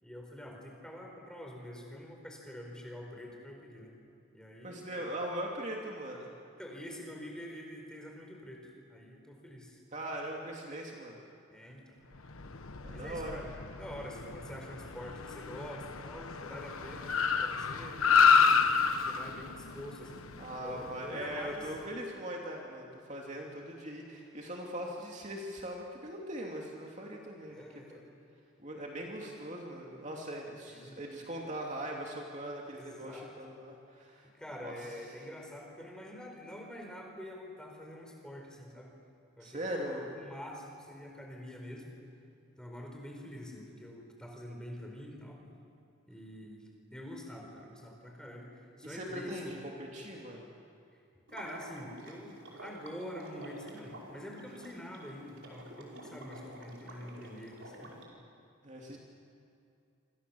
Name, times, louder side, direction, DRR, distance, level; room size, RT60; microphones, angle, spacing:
voice 1, 0.0-3.9 4.3-5.1 6.6-9.8 11.5-12.0 12.9-13.5 13.8-18.0 19.0-20.3 20.6-21.7 27.5-28.1 30.7-31.0 32.7-33.3 34.3-38.9 39.4-41.9 42.6-45.4 46.1-49.5 50.9-51.0 51.3-57.9, equal, 5° left, 1 dB, 4.4 m, -46 dB
voice 2, 4.6-6.3 9.9-11.2 12.8-13.4 20.4-27.6 27.9-28.0 28.6-34.3 34.6-34.7 39.4-40.1 48.8-50.5 58.6-59.0, right 1 dB, 35° right, -1 dB, 2.9 m, -40 dB
Car, 12.2-21.8, left 5 dB, 85° left, 1.3 m, -30 dB
Water / Liquid, 51.3-58.0, right 1 dB, 60° right, 5.3 m, -49 dB
27.0 x 27.0 x 7.2 m, 2.6 s
head